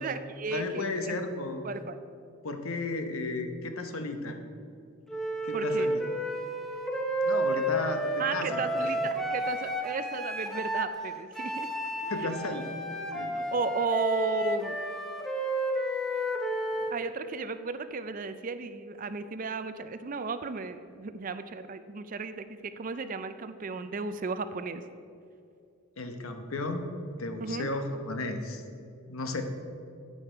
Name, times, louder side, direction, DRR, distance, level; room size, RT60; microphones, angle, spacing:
voice 1, 0.0-1.2 1.6-2.0 5.5-5.9 8.2-11.7 12.0-12.1 13.3-14.8 16.9-24.8 27.4-27.7, right 4 dB, 35° right, 11 dB, 0.4 m, -34 dB
voice 2, 0.5-1.7 2.4-4.4 5.4-5.9 7.2-8.9 12.1-12.7 13.1-13.3 26.0-26.9 27.2-28.6 29.1-29.4, left 2 dB, 70° left, 6 dB, 1.0 m, -34 dB
Wind instrument woodwind instrument, 5.1-10.9 11.3-17.0, right 1 dB, ahead, 0.8 m, -31 dB
9.8 x 8.9 x 4.5 m, 2.5 s
head